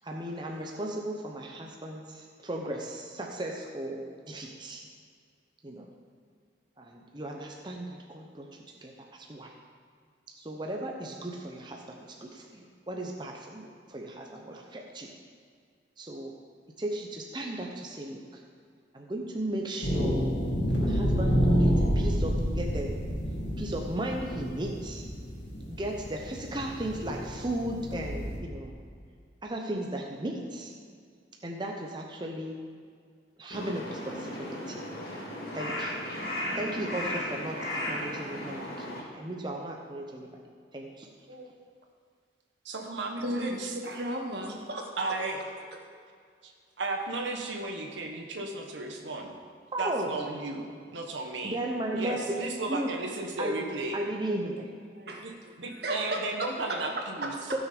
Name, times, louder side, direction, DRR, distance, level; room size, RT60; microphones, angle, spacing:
voice 1, 0.0-4.9 5.6-5.9 6.8-9.5 10.4-15.1 16.0-16.4 16.8-18.4 18.9-20.2 20.7-23.0 23.6-25.1 25.7-28.7 29.4-30.7 31.4-32.6 33.4-34.8 35.5-36.0 36.5-40.4 40.7-41.1 49.7-50.1 51.4-52.4 52.7-52.9 53.4-53.6 53.9-54.7 57.5-57.6, right 1 dB, 25° right, 0 dB, 0.8 m, -36 dB
sound 1, 19.8-28.4, equal, 80° left, 2.5 m, -28 dB
Crow, 33.5-39.0, left 1 dB, 55° left, 2.4 m, -35 dB
voice 2, 42.6-43.7 45.0-45.4 46.4-46.5 46.8-49.4 49.8-51.6 52.0-54.0 55.2-55.3 55.6-57.3, right 2 dB, 90° right, 2 dB, 1.3 m, -34 dB
voice 3, 43.2-44.9 55.0-55.2 55.8-56.5 57.2-57.3, right 1 dB, 65° right, 0 dB, 1.7 m, -34 dB
15.0 x 6.4 x 5.1 m, 2.1 s
head